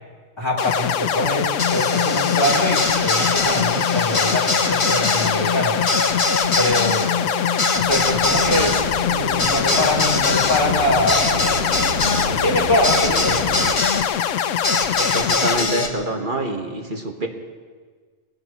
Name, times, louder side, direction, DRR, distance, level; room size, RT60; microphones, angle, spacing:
voice 1, 0.4-5.8 6.6-7.1 7.8-8.8 9.1-11.4 12.2-13.4, equal, 20° left, -4 dB, 3.4 m, -23 dB
sound 1, 0.6-15.6, left 9 dB, 80° left, 1.0 m, -23 dB
sound 2, 1.6-14.0 14.6-15.9, left 3 dB, 45° left, 1.5 m, -23 dB
sound 3, 7.8-13.7, right 1 dB, 65° right, 6.5 m, -32 dB
voice 2, 15.0-17.3, right 1 dB, 40° right, 2 dB, 1.6 m, -26 dB
21.0 x 17.5 x 3.0 m, 1.6 s
omnidirectional pair, 1.3 m